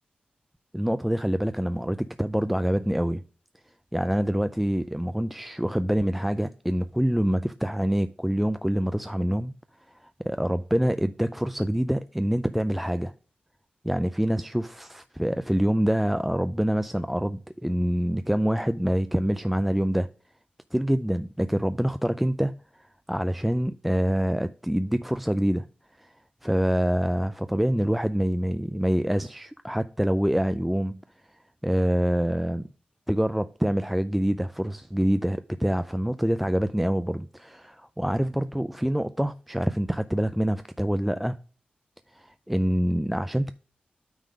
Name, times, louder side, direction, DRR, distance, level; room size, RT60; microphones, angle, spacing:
voice 1, 0.7-3.2 3.9-9.5 9.9-13.1 13.8-20.1 20.7-22.5 22.8-25.7 26.0-26.1 26.4-31.0 31.6-32.6 33.1-41.4 42.1-43.5, equal, 5° right, 0.3 m, -26 dB
9.2 x 3.7 x 5.1 m
wide cardioid pair, 85°, 3 cm